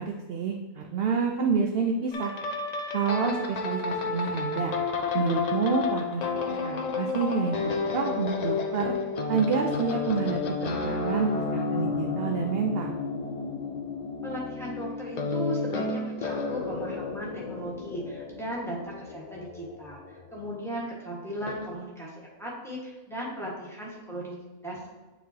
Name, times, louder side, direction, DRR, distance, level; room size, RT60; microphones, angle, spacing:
voice 1, 0.0-2.3 2.9-4.7 5.1-6.2 6.6-8.9 9.3-13.0, right 5 dB, 60° right, 2 dB, 0.6 m, -28 dB
sound 1, 2.1-20.6 21.4-21.7, left 4 dB, 65° left, 0.4 m, -31 dB
voice 2, 14.2-24.9, equal, ahead, -5 dB, 1.3 m, -37 dB
9.4 x 3.7 x 2.8 m, 1.3 s
omnidirectional pair, 1.4 m